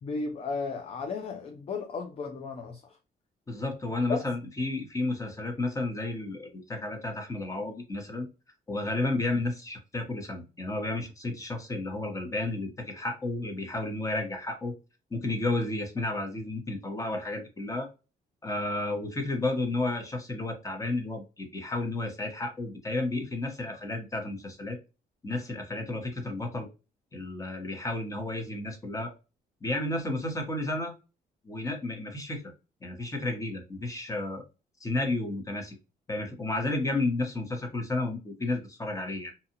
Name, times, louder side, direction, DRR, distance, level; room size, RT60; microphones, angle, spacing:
voice 1, 0.0-3.0 4.1-4.2, left 4 dB, 35° left, 0.4 m, -34 dB
voice 2, 3.5-8.3 8.7-14.8 15.1-17.9 18.4-24.8 25.2-26.7 27.1-29.1 29.6-30.9 31.4-32.4 32.8-34.4 34.8-35.7 36.1-39.3, left 2 dB, 20° left, 0.9 m, -32 dB
2.7 x 2.3 x 2.7 m
cardioid pair, 115°, 17 cm